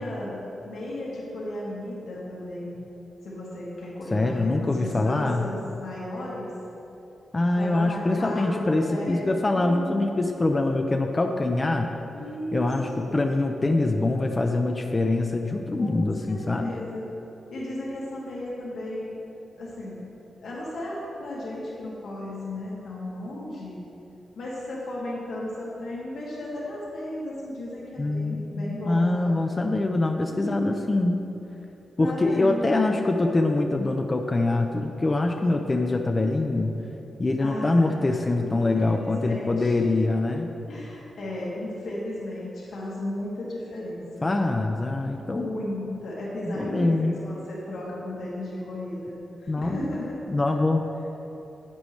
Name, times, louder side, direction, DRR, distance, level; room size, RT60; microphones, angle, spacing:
voice 1, 0.0-2.8 3.2-6.5 7.6-9.3 9.5-10.1 12.1-12.6 13.0-13.3 15.8-17.0 17.5-19.1 19.6-20.1 20.4-23.8 24.4-29.3 30.3-30.8 32.0-32.6 37.4-38.0 38.4-39.9 40.7-44.5 45.2-50.2, left 1 dB, 80° left, -6 dB, 2.2 m, -35 dB
voice 2, 4.1-5.4 7.3-11.9 12.5-16.8 28.0-31.3 32.0-36.7 37.2-40.5 44.2-45.5 46.5-47.2 49.5-49.8 50.3-50.8, left 2 dB, 25° left, 3 dB, 0.6 m, -24 dB
11.5 x 8.7 x 3.2 m, 2.9 s
wide cardioid pair, 110°, 0 cm